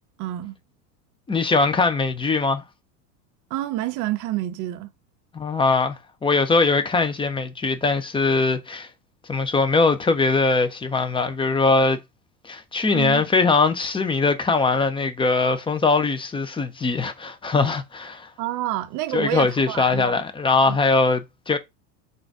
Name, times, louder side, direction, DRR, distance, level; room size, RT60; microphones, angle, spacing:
voice 1, 0.2-0.6 3.5-4.9 12.9-13.2 18.4-20.2 20.7-20.8, right 14 dB, 40° right, 0.6 m, -28 dB
voice 2, 1.3-2.6 5.3-6.0 6.2-8.9 9.3-12.0 12.4-18.3 19.1-21.6, left 3 dB, 10° left, 0.5 m, -21 dB
3.9 x 2.6 x 4.6 m
hypercardioid pair, 90°, 48 cm